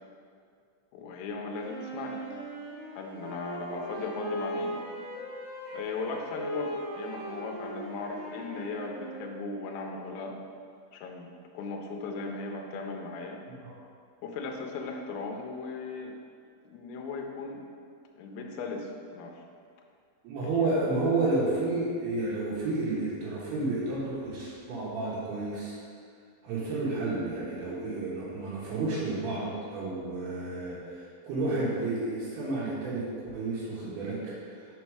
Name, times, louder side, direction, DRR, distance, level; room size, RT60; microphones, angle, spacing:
voice 1, 0.9-2.2 2.9-4.7 5.7-10.4 10.9-13.4 14.2-16.1 16.6-17.6 18.2-19.4 20.4-20.7, left 4 dB, 80° left, 2 dB, 2.3 m, -37 dB
Wind instrument woodwind instrument, 1.6-9.6, right 1 dB, 55° right, 1.4 m, -39 dB
voice 2, 20.2-25.8 26.4-33.1 33.3-34.2, right 2 dB, 75° right, -8 dB, 3.0 m, -31 dB
6.3 x 4.1 x 4.7 m, 2.3 s
omnidirectional pair, 4.8 m